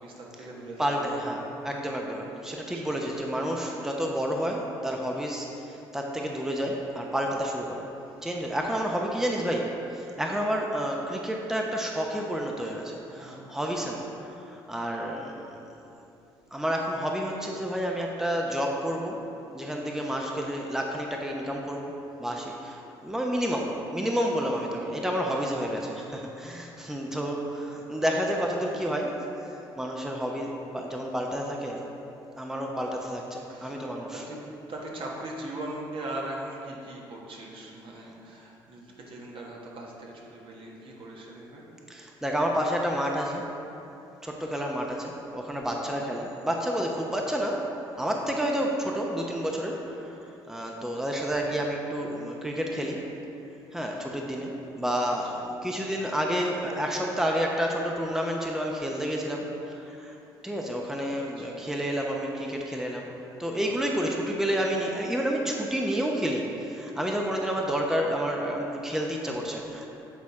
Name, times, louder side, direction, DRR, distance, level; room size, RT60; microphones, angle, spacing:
voice 1, 0.0-1.3 2.3-3.2 8.0-8.2 13.0-13.5 33.5-33.8 34.1-34.4 34.7-41.7 45.9-46.0 48.2-48.3 51.4-51.6 55.1-55.3 61.4-61.6, right 1 dB, 55° right, -2 dB, 1.5 m, -40 dB
voice 2, 0.8-7.9 8.2-15.6 16.5-19.2 19.5-21.9 22.2-31.9 32.4-34.2 41.9-43.4 44.2-47.7 48.0-50.2 50.5-53.0 53.7-60.1 60.4-63.1 63.4-69.9, equal, 5° right, 0 dB, 0.8 m, -30 dB
8.6 x 4.1 x 4.7 m, 2.9 s
supercardioid pair, 65°, 10 cm